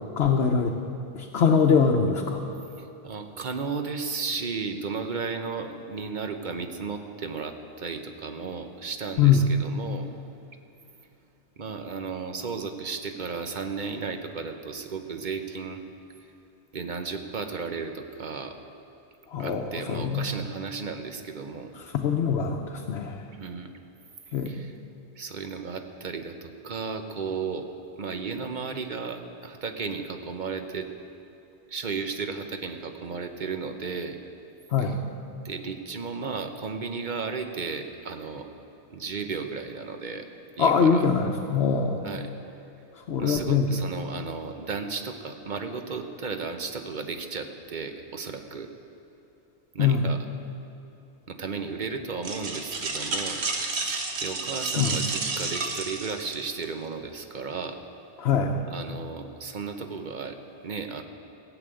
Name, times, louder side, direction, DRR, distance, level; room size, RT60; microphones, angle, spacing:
voice 1, 0.2-0.8 1.1-2.4 9.2-9.5 19.3-20.3 21.9-23.2 24.3-24.6 34.7-35.0 40.6-42.1 43.1-43.8 49.8-50.1 54.8-55.1 58.2-58.6, left 6 dB, 75° left, 1 dB, 1.1 m, -23 dB
voice 2, 2.8-10.1 11.6-15.8 16.2-16.3 16.7-18.6 19.4-21.7 23.4-23.7 24.5-24.8 25.1-27.7 28.0-30.9 31.7-34.2 34.8-34.9 35.4-38.5 38.9-40.3 40.6-41.1 42.0-42.3 43.2-48.7 49.7-50.2 51.3-53.4 54.2-57.8 58.7-60.4 60.6-61.0, right 5 dB, 50° right, 6 dB, 1.0 m, -34 dB
sound 1, 52.2-56.6, right 3 dB, 75° right, 1.4 m, -31 dB
15.0 x 7.0 x 9.0 m, 2.9 s
omnidirectional pair, 1.1 m